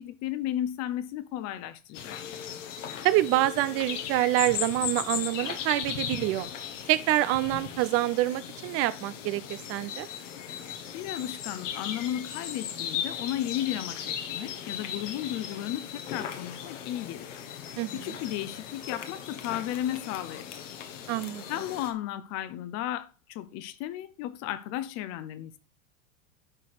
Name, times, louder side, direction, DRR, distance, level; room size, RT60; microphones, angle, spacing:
voice 1, 0.0-2.5 10.9-17.4 17.9-20.5 21.5-25.6, left 12 dB, 40° left, 0.9 m, -34 dB
sound 1, 1.9-21.9, left 8 dB, 65° left, 1.5 m, -37 dB
voice 2, 3.0-6.5 6.9-10.1 17.8-18.2 21.1-21.4, right 16 dB, 40° right, 0.6 m, -26 dB
11.0 x 4.1 x 4.7 m
hypercardioid pair, 100°, 39 cm